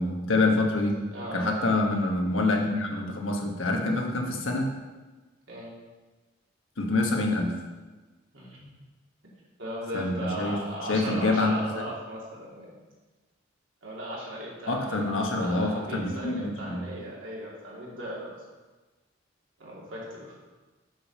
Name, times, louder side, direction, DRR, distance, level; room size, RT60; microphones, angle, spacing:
voice 1, 0.0-1.0 1.3-4.7 6.8-7.5 9.9-10.6 10.9-11.5 14.7-16.8, left 2 dB, 85° left, 1 dB, 1.3 m, -26 dB
voice 2, 1.1-1.7 5.5-5.7 8.3-8.7 9.6-12.7 13.8-18.4 19.6-20.3, right 1 dB, 75° right, -5 dB, 2.7 m, -37 dB
7.9 x 5.2 x 5.5 m, 1.2 s
head